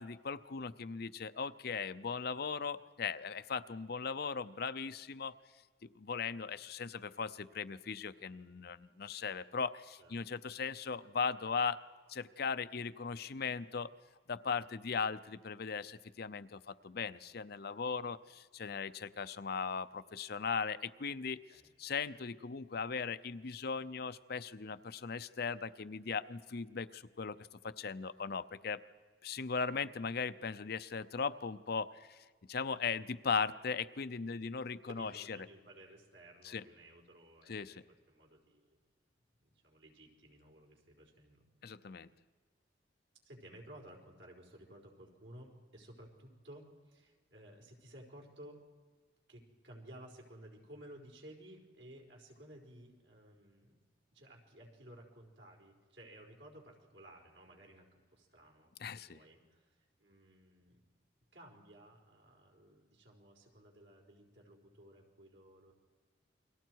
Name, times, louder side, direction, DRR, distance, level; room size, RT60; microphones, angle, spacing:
voice 1, 0.0-5.3 5.8-11.8 12.1-13.9 14.3-21.4 21.8-27.4 27.6-28.8 29.2-35.1 36.4-36.6 37.5-37.8 41.6-42.1 58.8-59.2, left 5 dB, 60° left, 12 dB, 0.6 m, -38 dB
voice 2, 34.9-37.8 38.1-38.8 39.4-41.4 43.2-48.6 49.3-53.8 54.1-60.8 61.3-65.7, right 1 dB, 90° right, 0 dB, 4.8 m, -56 dB
29.0 x 22.5 x 4.7 m, 1.5 s
head